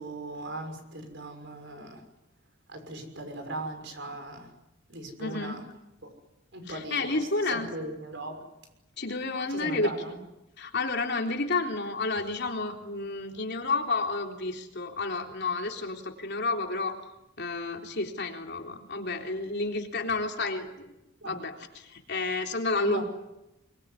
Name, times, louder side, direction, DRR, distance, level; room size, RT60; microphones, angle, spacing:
voice 1, 0.0-2.0 2.7-4.5 4.9-5.6 6.0-6.1 6.5-8.5 9.5-10.2 21.2-21.4 22.8-23.0, right 1 dB, 55° right, 7 dB, 6.1 m, -38 dB
voice 2, 5.2-5.6 6.7-7.7 9.0-9.9 10.6-16.9 17.4-20.9 21.2-23.0, left 3 dB, 50° left, 3 dB, 3.6 m, -30 dB
24.5 x 24.0 x 9.8 m, 0.91 s
head